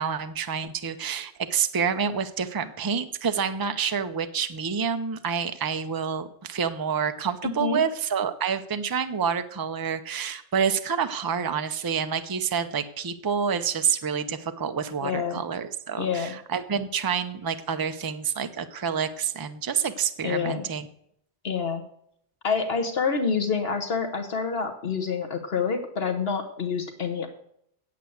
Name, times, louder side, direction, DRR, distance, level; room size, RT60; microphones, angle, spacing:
voice 1, 0.0-20.9, right 7 dB, 25° right, 9 dB, 0.5 m, -28 dB
voice 2, 7.4-7.8 15.0-15.4 16.0-16.3 20.2-20.7 21.4-21.8 22.4-27.3, left 5 dB, 65° left, 5 dB, 1.3 m, -27 dB
8.4 x 8.2 x 7.8 m, 0.71 s
omnidirectional pair, 1.1 m